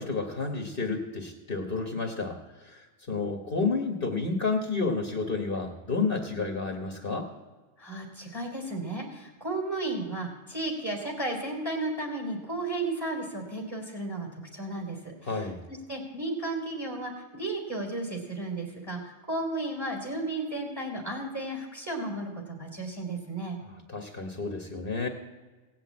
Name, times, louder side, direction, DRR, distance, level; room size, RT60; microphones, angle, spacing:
voice 1, 0.0-7.3 15.2-15.6 23.9-25.1, left 4 dB, 55° left, 2 dB, 1.5 m, -30 dB
voice 2, 7.8-23.6, right 2 dB, 15° right, 0 dB, 3.5 m, -34 dB
17.5 x 6.0 x 8.5 m, 1.3 s
omnidirectional pair, 1.1 m